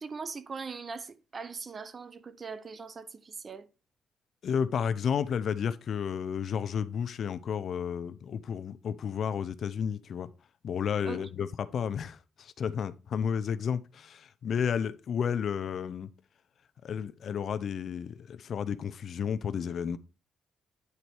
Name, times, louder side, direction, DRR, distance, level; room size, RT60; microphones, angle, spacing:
voice 1, 0.0-3.7 11.0-11.3, right 5 dB, 40° right, 0.7 m, -40 dB
voice 2, 4.4-10.3 10.6-16.1 16.8-20.0, left 7 dB, 60° left, 0.6 m, -32 dB
9.7 x 4.1 x 4.6 m
cardioid pair, 90°, 0 cm